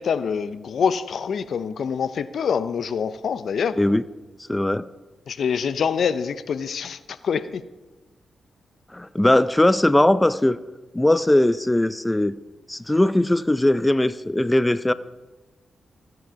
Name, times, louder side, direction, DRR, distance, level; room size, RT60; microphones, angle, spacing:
voice 1, 0.0-3.8 5.3-7.6, left 6 dB, 75° left, 14 dB, 0.5 m, -25 dB
voice 2, 4.5-4.9 8.9-10.6 10.9-12.4 12.7-14.9, left 1 dB, 15° left, 16 dB, 0.4 m, -19 dB
14.5 x 7.8 x 5.7 m, 1.2 s
cardioid pair, 70°, 0 cm